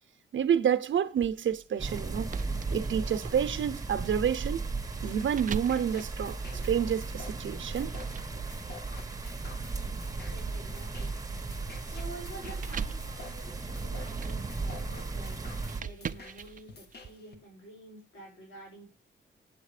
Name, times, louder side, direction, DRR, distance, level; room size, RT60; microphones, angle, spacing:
voice 1, 0.3-2.3 2.7-4.6 5.0-7.9, right 8 dB, 75° right, 0.8 m, -29 dB
sound 1, 1.2-7.0 7.6-17.1, right 7 dB, 40° right, 0.5 m, -43 dB
sound 2, 1.8-15.8, right 3 dB, 15° right, 1.2 m, -36 dB
sound 3, 5.3-17.3, left 4 dB, 55° left, 1.6 m, -50 dB
voice 2, 10.3-11.1 11.9-15.4 15.7-18.9, right 1 dB, 75° left, 5.7 m, -49 dB
8.8 x 8.1 x 4.9 m
wide cardioid pair, 130°, 20 cm